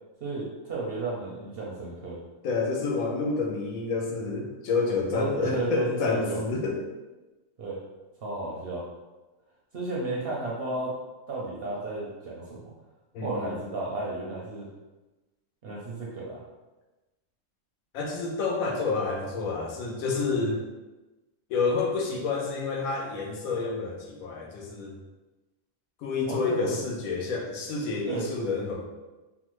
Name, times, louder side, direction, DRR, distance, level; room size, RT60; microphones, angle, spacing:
voice 1, 0.2-2.2 5.1-6.4 7.6-7.8 8.2-8.8 9.7-10.9 11.3-12.6 13.2-14.7 15.6-16.4 26.3-26.8 28.1-28.3, right 2 dB, 60° right, -4 dB, 0.6 m, -33 dB
voice 2, 2.4-6.8 13.1-13.5 17.9-20.6 21.5-25.0 26.0-28.8, left 4 dB, 80° left, -1 dB, 1.1 m, -29 dB
3.4 x 2.0 x 3.0 m, 1.1 s
omnidirectional pair, 1.4 m